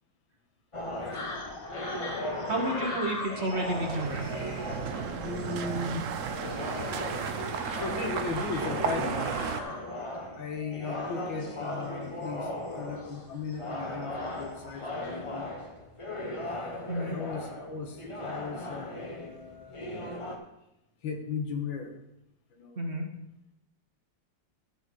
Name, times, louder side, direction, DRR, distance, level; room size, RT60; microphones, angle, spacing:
sound 1, 0.7-20.4, left 1 dB, 25° left, 0.7 m, -38 dB
voice 1, 1.0-1.3 5.2-6.2 7.1-7.2 7.8-9.3 10.3-15.5 16.4-20.2 21.0-22.0 22.5-23.0, left 4 dB, 85° left, 4 dB, 2.1 m, -37 dB
sound 2, 1.1-15.4, left 2 dB, 65° left, 2.6 m, -42 dB
voice 2, 2.5-4.3 16.9-17.2 22.8-23.0, right 1 dB, 40° right, 1 dB, 1.3 m, -31 dB
sound 3, 3.3-9.6, right 7 dB, 75° right, 0.7 m, -34 dB
12.0 x 6.7 x 4.5 m, 0.83 s
omnidirectional pair, 2.1 m